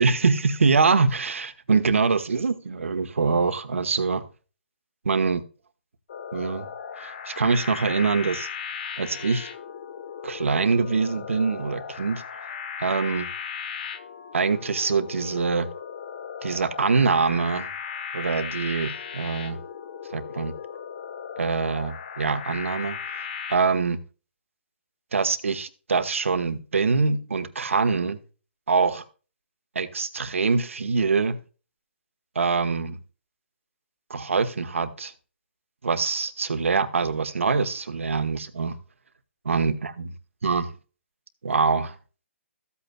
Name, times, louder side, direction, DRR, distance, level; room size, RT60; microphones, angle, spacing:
voice 1, 0.0-4.2 5.0-5.4 6.3-6.7 7.0-8.5 9.0-9.5 10.2-12.2 12.8-13.3 14.3-15.7 16.4-17.7 18.1-19.6 20.1-20.5 21.4-24.0 25.1-28.2 28.7-29.0 29.7-31.4 32.3-33.0 34.1-35.1 35.8-38.7 39.4-40.1 40.4-40.7 41.4-41.9, right 4 dB, 85° right, 1.3 m, -24 dB
sound 1, 6.1-23.6, left 7 dB, 50° left, 1.3 m, -37 dB
14.5 x 8.4 x 2.3 m
hypercardioid pair, 155°, 7 cm